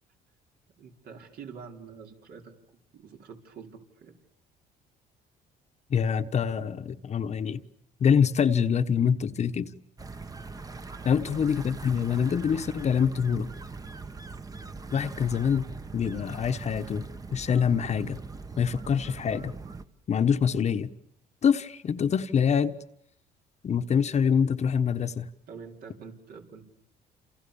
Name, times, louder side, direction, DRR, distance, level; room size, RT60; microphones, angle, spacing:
voice 1, 0.8-4.2 11.2-11.4 25.5-26.6, right 6 dB, 65° right, 5.1 m, -46 dB
voice 2, 5.9-7.6 8.0-9.7 11.0-13.5 14.9-15.7 15.9-17.1 17.3-18.2 18.6-19.5 20.1-20.9 21.4-22.7 23.6-25.3, left 7 dB, 40° left, 1.3 m, -25 dB
sound 1, 10.0-19.8, right 4 dB, 20° right, 1.4 m, -41 dB
29.0 x 28.5 x 7.1 m
cardioid pair, 110°, 17 cm